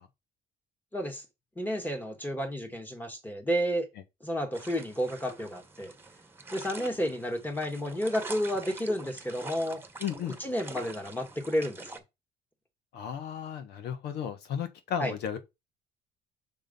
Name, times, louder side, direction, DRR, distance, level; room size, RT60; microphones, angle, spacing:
voice 1, 0.9-1.2 1.6-3.9 4.2-5.9 6.5-9.8 10.4-11.8 15.0-15.1, equal, 10° left, 1.8 m, -31 dB
sound 1, 4.5-12.0, right 3 dB, 15° right, 1.2 m, -45 dB
voice 2, 10.0-10.4 12.9-15.4, left 8 dB, 75° left, 1.5 m, -34 dB
6.2 x 3.7 x 5.4 m
cardioid pair, 110°, 17 cm